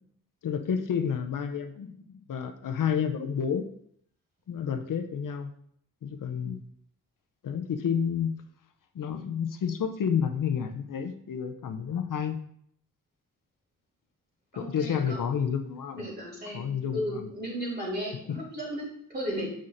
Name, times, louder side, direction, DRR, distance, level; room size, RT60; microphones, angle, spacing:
voice 1, 0.4-3.7 4.5-5.5 6.0-6.6 7.4-8.4 8.9-12.4 14.5-16.0 16.5-17.3 18.3-18.4, left 7 dB, 70° left, 7 dB, 0.6 m, -30 dB
voice 2, 14.5-15.2 16.0-19.5, equal, 30° right, -4 dB, 2.8 m, -35 dB
7.4 x 5.7 x 2.5 m, 0.67 s
wide cardioid pair, 120°, 33 cm